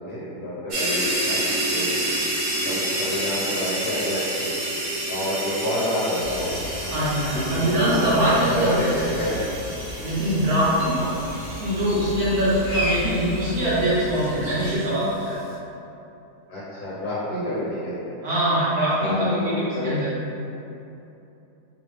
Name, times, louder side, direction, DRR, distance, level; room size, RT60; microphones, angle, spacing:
voice 1, 0.1-1.4 1.7-2.0 2.6-4.5 5.1-6.5 7.3-9.5 11.0-11.1 16.5-18.1 19.0-19.9, left 1 dB, 75° left, -10 dB, 1.5 m, -28 dB
sound 1, 0.7-14.3, right 1 dB, 55° right, 1.0 m, -29 dB
sound 2, 6.2-14.8, equal, 45° left, 0.5 m, -34 dB
voice 2, 6.9-8.9 10.0-11.0 11.6-15.4 18.2-20.1, right 1 dB, 70° right, -9 dB, 1.6 m, -23 dB
3.6 x 3.0 x 3.2 m, 2.8 s
omnidirectional pair, 1.7 m